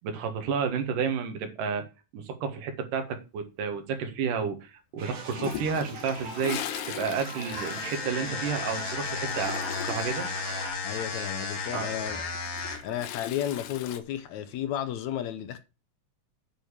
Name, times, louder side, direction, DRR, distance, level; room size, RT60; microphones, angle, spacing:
voice 1, 0.0-1.9 2.1-10.3 11.7-11.9, right 6 dB, 90° right, 3.2 m, -31 dB
sound 1, 5.0-10.7, right 5 dB, 65° right, 3.5 m, -42 dB
Toilet flush, 5.3-8.8 9.0-10.2 12.3-14.0, left 12 dB, 90° left, 2.5 m, -39 dB
sound 2, 7.5-13.0, left 4 dB, 50° left, 2.2 m, -34 dB
voice 2, 10.8-12.2 12.8-15.6, left 10 dB, 75° left, 1.9 m, -33 dB
9.1 x 4.9 x 7.2 m
omnidirectional pair, 3.7 m